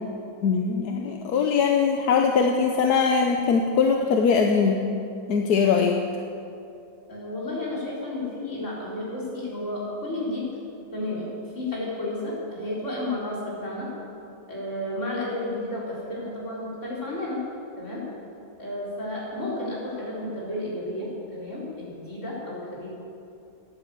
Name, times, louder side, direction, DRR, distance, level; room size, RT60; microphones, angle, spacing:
voice 1, 0.4-4.8 5.3-6.0, left 5 dB, 85° left, 3 dB, 1.4 m, -21 dB
voice 2, 7.1-10.5 10.9-11.3 11.5-13.9 14.5-17.4 17.8-18.0 18.6-22.9, left 1 dB, 50° left, -6 dB, 4.7 m, -32 dB
14.0 x 10.5 x 8.3 m, 2.6 s
omnidirectional pair, 1.6 m